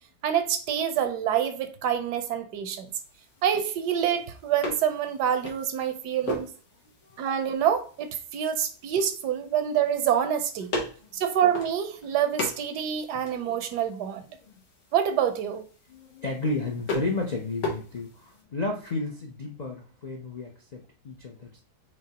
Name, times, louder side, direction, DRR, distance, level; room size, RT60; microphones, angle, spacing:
voice 1, 0.2-2.9 3.4-6.5 7.2-10.7 11.1-14.2 14.9-15.6, right 9 dB, 80° right, 9 dB, 1.3 m, -26 dB
sound 1, 2.9-18.4, left 2 dB, 85° left, 1.8 m, -39 dB
voice 2, 15.9-21.6, left 2 dB, 55° left, 0 dB, 0.4 m, -32 dB
5.2 x 3.4 x 2.8 m, 0.41 s
omnidirectional pair, 1.7 m